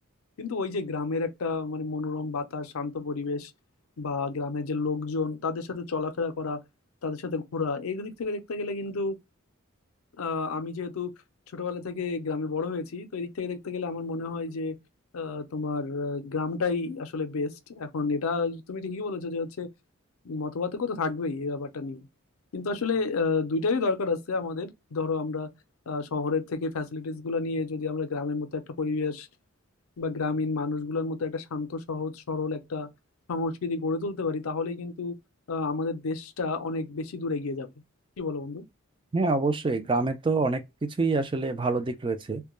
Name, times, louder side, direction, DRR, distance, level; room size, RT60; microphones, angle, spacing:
voice 1, 0.4-3.5 4.0-6.6 7.0-9.2 10.2-11.1 11.5-14.8 15.1-19.7 20.2-22.1 22.5-25.5 25.9-29.3 30.0-32.9 33.3-35.2 35.5-37.7 38.2-38.6, left 4 dB, 85° left, 0.5 m, -30 dB
voice 2, 39.1-42.4, right 3 dB, 25° right, 0.3 m, -26 dB
2.2 x 2.1 x 2.9 m
head